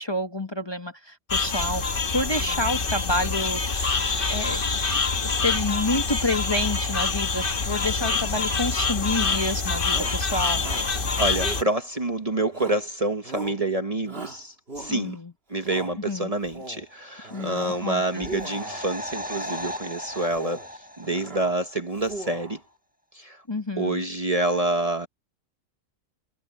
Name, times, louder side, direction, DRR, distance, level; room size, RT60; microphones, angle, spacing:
voice 1, 0.0-3.9 4.3-4.6 5.2-10.6 14.9-15.3 16.1-16.3 17.3-18.2 23.5-24.0, left 1 dB, 20° left, 1.2 m, -29 dB
sound 1, 1.3-11.6, left 4 dB, 45° left, 1.5 m, -26 dB
Shout, 9.1-9.5 9.9-10.2 10.6-10.9 11.4-12.1 12.5-12.9 13.2-13.6 14.1-15.2 15.6-16.0 16.4-16.9 17.2-17.9 18.2-18.9 19.4-19.8 20.2-20.7 21.0-21.6 21.9-22.6, right 2 dB, 50° right, 3.0 m, -39 dB
voice 2, 11.2-15.2 15.5-20.6 21.0-22.6 23.1-23.4 23.8-25.1, right 2 dB, 30° right, 1.2 m, -27 dB
sound 2, 16.9-21.8 22.0-22.1, equal, 5° right, 1.3 m, -38 dB
omnidirectional pair, 1.3 m